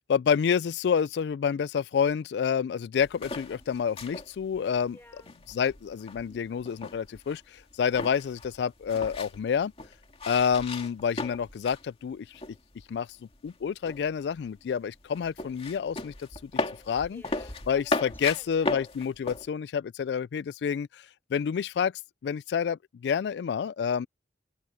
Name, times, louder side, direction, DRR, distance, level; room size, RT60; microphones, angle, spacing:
voice 1, 0.1-5.0 5.5-9.7 10.3-12.4 12.9-13.1 13.4-17.2 17.7-21.0 21.3-21.9 22.2-24.1, left 7 dB, 70° left, 0.3 m, -28 dB
sound 1, 3.0-11.9 12.1-13.0 13.3-19.5, left 2 dB, 35° left, 2.3 m, -36 dB
voice 2, 4.9-5.3 17.1-17.9 18.2-18.9, left 1 dB, 10° left, 5.3 m, -53 dB
open air
head